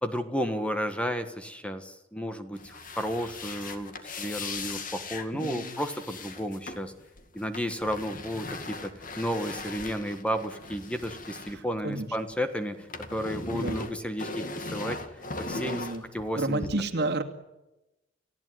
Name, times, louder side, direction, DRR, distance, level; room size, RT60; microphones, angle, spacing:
voice 1, 0.0-6.9 7.3-15.0 15.5-15.8 16.1-16.7, equal, 5° left, 8 dB, 1.4 m, -32 dB
sound 1, 2.5-12.3 12.6-16.7, left 3 dB, 45° left, 2.3 m, -39 dB
voice 2, 5.3-5.8 11.5-12.1 13.5-13.8 15.5-16.0 16.4-17.2, right 2 dB, 60° right, 5 dB, 2.6 m, -31 dB
30.0 x 15.0 x 9.4 m, 0.99 s
head